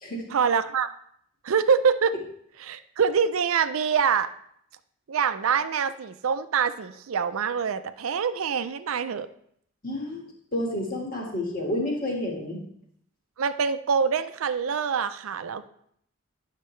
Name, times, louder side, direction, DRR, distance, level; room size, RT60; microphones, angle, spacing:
voice 1, 0.3-0.9 1.4-2.1 2.6-4.3 5.1-9.3 13.4-15.7, right 6 dB, 80° right, 12 dB, 0.5 m, -25 dB
voice 2, 9.8-10.2 10.5-12.6, left 1 dB, 40° left, 0 dB, 1.7 m, -30 dB
10.0 x 6.5 x 3.2 m, 0.69 s
head